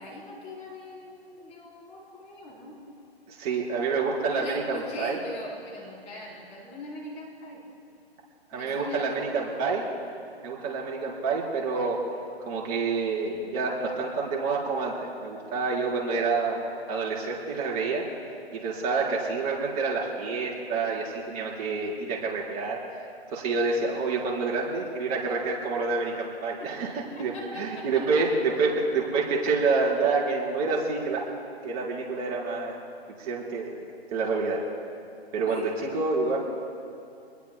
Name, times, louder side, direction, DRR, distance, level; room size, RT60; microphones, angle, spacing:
voice 1, 0.0-2.8 4.3-7.6 8.5-9.2 26.6-26.7 27.1-28.2 35.4-35.8, left 1 dB, 20° left, -3 dB, 4.1 m, -41 dB
voice 2, 3.3-5.2 8.5-9.9 10.4-12.0 12.4-18.1 18.5-22.8 23.3-31.2 31.6-32.8 33.2-33.8 34.1-34.6 35.3-36.4, right 4 dB, 35° right, -3 dB, 4.2 m, -28 dB
27.5 x 21.0 x 2.3 m, 2.6 s
hypercardioid pair, 145°, 33 cm